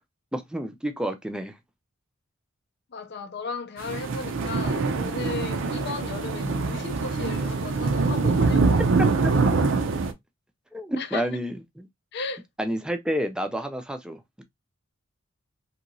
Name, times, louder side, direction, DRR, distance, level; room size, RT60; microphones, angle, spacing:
voice 1, 0.3-1.5 8.8-9.3 10.7-11.9 12.6-14.4, equal, 5° right, 0.4 m, -30 dB
voice 2, 2.9-8.9 11.0-11.3 12.1-12.4, left 4 dB, 55° left, 0.5 m, -35 dB
sound 1, 3.8-10.1, right 4 dB, 65° right, 0.5 m, -24 dB
2.9 x 2.7 x 2.6 m
head